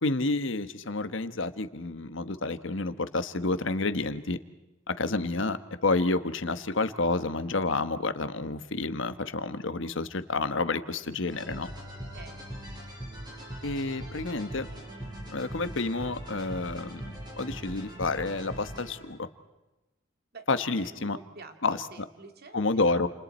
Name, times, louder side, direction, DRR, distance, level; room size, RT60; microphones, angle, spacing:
voice 1, 0.0-4.4 4.9-11.7 13.6-14.7 15.3-19.3 20.5-21.2 21.6-21.8 22.5-23.1, left 3 dB, 65° left, 11 dB, 1.2 m, -29 dB
sound 1, 11.3-19.2, equal, 20° right, 6.6 m, -41 dB
voice 2, 12.1-12.5 20.3-20.5 20.8-22.6, right 3 dB, 50° right, 6 dB, 2.3 m, -48 dB
29.5 x 28.5 x 4.4 m, 1.0 s
head